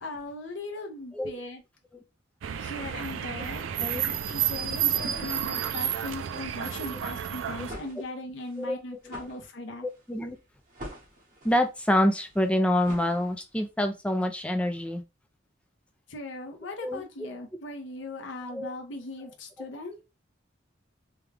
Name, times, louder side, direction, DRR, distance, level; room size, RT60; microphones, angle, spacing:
voice 1, 0.0-1.6 2.6-3.6 4.0-9.9 16.1-20.0, left 2 dB, 75° left, 0.7 m, -39 dB
sound 1, 2.4-7.7, right 10 dB, 80° right, 0.4 m, -31 dB
sound 2, 7.5-13.7, equal, 45° right, 1.6 m, -47 dB
voice 2, 11.4-15.0 16.8-17.0 18.5-18.7, left 1 dB, 5° left, 0.4 m, -26 dB
3.4 x 2.3 x 3.3 m
head